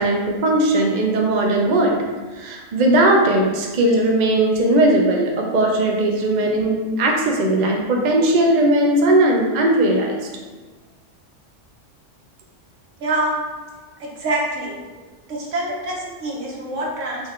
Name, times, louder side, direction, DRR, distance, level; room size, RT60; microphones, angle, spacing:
voice 1, 0.0-2.0 2.4-10.2, right 1 dB, 45° right, 0 dB, 0.6 m, -18 dB
voice 2, 13.0-13.4 14.0-14.8 15.3-17.3, right 1 dB, 75° right, -3 dB, 1.3 m, -25 dB
4.4 x 2.5 x 4.2 m, 1.3 s
omnidirectional pair, 1.3 m